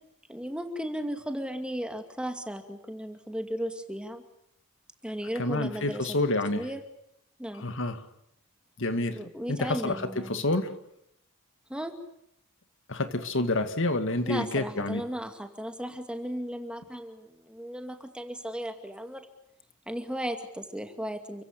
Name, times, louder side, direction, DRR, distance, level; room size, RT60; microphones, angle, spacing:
voice 1, 0.3-4.2 5.0-6.8 7.4-7.7 9.1-10.4 11.7-12.0 14.2-19.3 19.9-21.4, equal, 5° right, 6 dB, 2.3 m, -36 dB
voice 2, 5.4-6.6 7.6-8.0 8.8-9.2 9.5-10.0 10.3-10.7 12.9-15.0, left 2 dB, 55° left, 9 dB, 2.2 m, -28 dB
30.0 x 16.0 x 9.9 m, 0.77 s
head